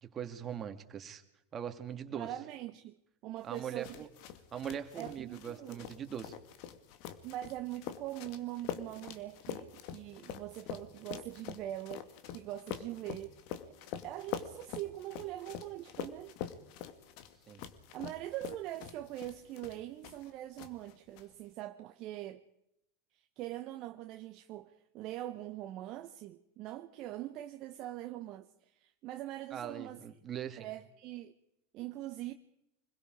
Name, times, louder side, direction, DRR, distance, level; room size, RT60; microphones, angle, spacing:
voice 1, 0.0-1.2 1.5-2.3 3.4-4.1 4.5-6.4 17.5-17.6 29.5-30.7, right 8 dB, 30° right, 2.6 m, -41 dB
voice 2, 2.1-3.0 3.2-4.0 5.0-5.9 7.2-12.1 12.3-13.4 14.0-16.3 17.9-22.4 23.1-30.0 30.6-31.3 31.7-32.3, right 14 dB, 45° right, 1.2 m, -42 dB
sound 1, 3.5-20.3 20.6-21.2, left 10 dB, 55° left, 2.1 m, -45 dB
25.5 x 22.0 x 4.9 m
figure-of-eight pair, 85°, 0 cm